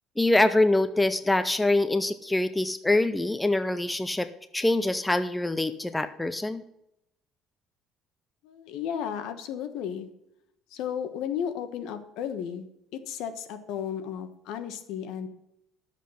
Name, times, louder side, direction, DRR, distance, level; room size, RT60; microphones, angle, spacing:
voice 1, 0.2-4.3 4.5-6.6, left 2 dB, 5° left, 11 dB, 0.5 m, -24 dB
voice 2, 8.4-10.1 10.7-15.3, left 8 dB, 70° left, 9 dB, 1.2 m, -34 dB
11.5 x 7.4 x 5.6 m, 0.81 s
cardioid pair, 160°, 0 cm